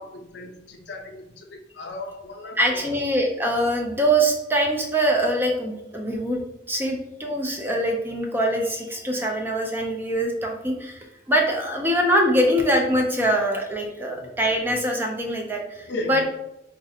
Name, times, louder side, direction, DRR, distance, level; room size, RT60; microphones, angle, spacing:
voice 1, 0.0-3.0 14.0-14.4 15.8-16.2, left 2 dB, 60° left, 4 dB, 0.5 m, -36 dB
voice 2, 2.6-6.4 6.7-16.2, right 1 dB, 10° right, 1 dB, 0.4 m, -23 dB
3.9 x 2.4 x 2.7 m, 0.86 s
head